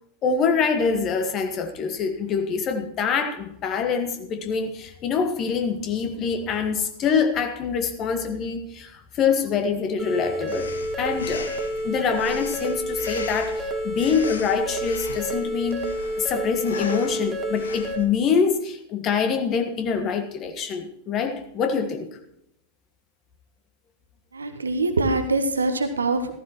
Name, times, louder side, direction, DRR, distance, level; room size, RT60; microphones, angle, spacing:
voice 1, 0.2-10.7 11.0-11.5 11.8-15.8 16.2-22.1, left 6 dB, 35° left, 6 dB, 1.6 m, -25 dB
sound 1, 10.0-18.0, right 1 dB, 10° right, 1.9 m, -29 dB
Breathing, 10.5-18.1, left 4 dB, 70° left, 1.1 m, -38 dB
voice 2, 24.3-26.3, right 2 dB, 75° right, 8 dB, 1.1 m, -23 dB
15.0 x 14.5 x 3.1 m, 0.77 s
figure-of-eight pair, 90°, 0 cm